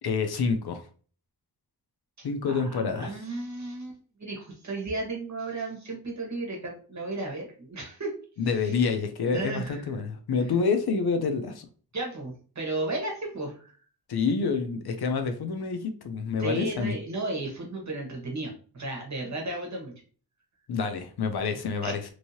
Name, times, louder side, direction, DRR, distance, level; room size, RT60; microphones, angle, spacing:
voice 1, 0.0-0.8 2.2-3.1 8.4-11.7 14.1-17.0 20.7-22.1, left 5 dB, 75° left, 7 dB, 0.6 m, -27 dB
voice 2, 2.2-8.2 8.6-8.7 9.3-9.8 11.9-13.5 16.4-19.9 21.8-21.9, right 2 dB, 45° right, 0 dB, 1.2 m, -34 dB
3.1 x 2.7 x 2.8 m, 0.41 s
wide cardioid pair, 105°, 39 cm